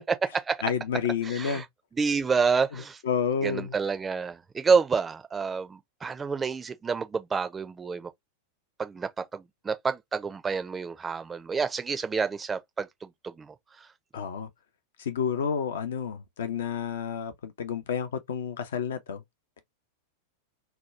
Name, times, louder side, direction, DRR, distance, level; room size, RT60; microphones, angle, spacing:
voice 1, 0.6-1.7 2.7-3.8 14.1-14.5 15.0-19.2, left 7 dB, 60° left, 0.6 m, -30 dB
voice 2, 1.2-1.6 2.0-3.0 3.4-8.1 8.8-13.9, right 5 dB, 15° right, 0.5 m, -29 dB
2.8 x 2.2 x 3.2 m
figure-of-eight pair, 90°, 0 cm